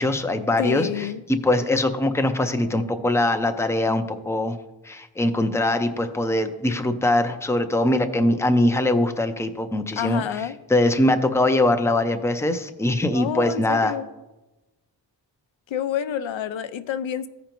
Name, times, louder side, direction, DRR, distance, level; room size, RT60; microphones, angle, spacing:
voice 1, 0.0-4.6 4.8-10.2 10.7-13.9, left 1 dB, 5° left, 7 dB, 0.4 m, -22 dB
voice 2, 0.6-1.2 10.0-10.6 13.1-14.1 15.7-17.3, left 9 dB, 85° left, 12 dB, 0.6 m, -28 dB
15.0 x 5.1 x 3.0 m, 1.1 s
wide cardioid pair, 160°, 45 cm